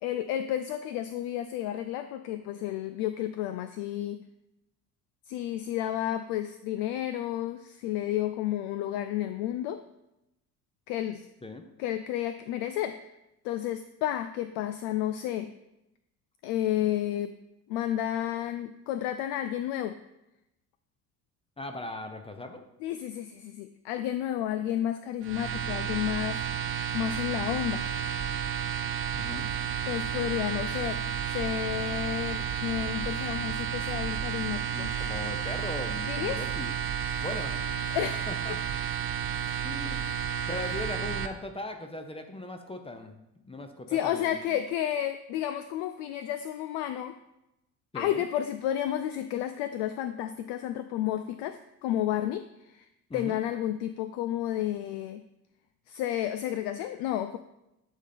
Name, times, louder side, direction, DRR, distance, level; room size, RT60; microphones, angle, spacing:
voice 1, 0.0-4.2 5.3-9.8 10.9-11.3 11.8-12.9 13.4-15.5 16.4-17.3 17.7-19.9 22.8-27.8 29.9-34.9 36.1-36.4 37.9-38.3 43.9-47.1 47.9-52.9 53.1-55.2 55.9-57.4, left 11 dB, 60° left, 10 dB, 0.5 m, -31 dB
voice 2, 21.6-22.6 29.1-29.5 34.6-36.7 37.2-37.6 38.3-38.6 39.6-40.1 40.5-43.1 43.5-44.4 47.9-48.2 53.1-53.4, left 2 dB, 10° left, 6 dB, 0.6 m, -39 dB
sound 1, 25.2-41.3, right 8 dB, 25° right, 0.5 m, -32 dB
9.0 x 3.7 x 3.5 m, 0.90 s
hypercardioid pair, 55°, 48 cm